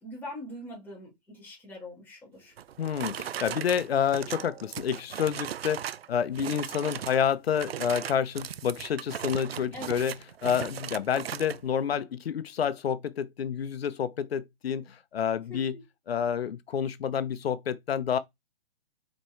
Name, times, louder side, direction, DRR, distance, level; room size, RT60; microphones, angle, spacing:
voice 1, 0.0-2.5 9.7-10.0 15.5-15.8, left 1 dB, 5° left, 2.4 m, -43 dB
sound 1, 2.6-6.1 6.3-7.2 7.5-11.6, right 10 dB, 80° right, 0.6 m, -38 dB
voice 2, 2.8-10.1 10.4-15.7 16.1-18.2, left 8 dB, 85° left, 0.8 m, -29 dB
5.2 x 4.4 x 4.5 m
hypercardioid pair, 165°, 30 cm